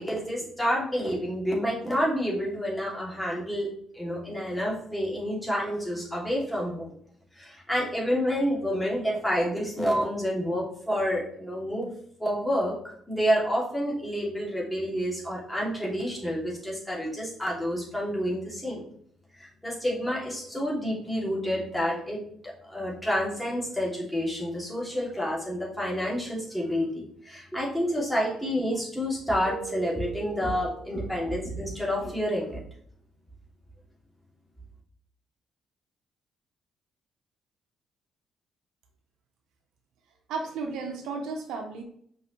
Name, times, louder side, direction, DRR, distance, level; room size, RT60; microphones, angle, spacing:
voice 1, 0.0-3.7 3.9-6.9 7.4-11.9 12.2-18.8 19.4-32.6, equal, 5° left, -4 dB, 2.8 m, -29 dB
Keyboard (musical), 29.5-31.5, right 8 dB, 30° right, 1.3 m, -41 dB
voice 2, 40.3-41.8, right 4 dB, 85° right, 4 dB, 0.9 m, -33 dB
5.5 x 5.4 x 3.3 m, 0.62 s
cardioid pair, 90°, 0 cm